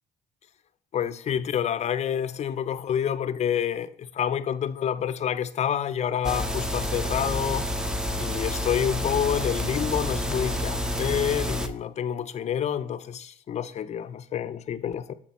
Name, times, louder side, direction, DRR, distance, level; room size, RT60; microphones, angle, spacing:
voice 1, 0.9-7.7 8.1-15.1, left 9 dB, 40° left, 0.5 m, -28 dB
sound 1, 6.2-11.7, left 1 dB, 5° right, 0.6 m, -29 dB
7.2 x 4.4 x 4.1 m
cardioid pair, 110°, 17 cm